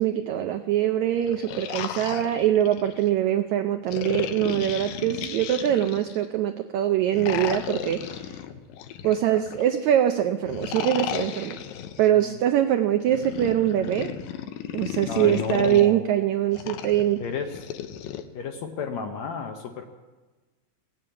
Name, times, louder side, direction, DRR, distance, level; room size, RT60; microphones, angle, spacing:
voice 1, 0.0-8.0 9.0-11.5 12.0-14.1 14.7-17.2, right 11 dB, 85° right, 8 dB, 1.6 m, -23 dB
sound 1, 1.1-3.1 3.9-6.3 7.1-9.7 10.5-12.1 13.1-15.9 16.5-18.2, left 10 dB, 90° left, 2.5 m, -34 dB
voice 2, 15.0-16.0 17.2-17.7 18.3-19.8, left 6 dB, 70° left, 4 dB, 1.7 m, -32 dB
17.0 x 8.8 x 8.4 m, 1.3 s
omnidirectional pair, 4.0 m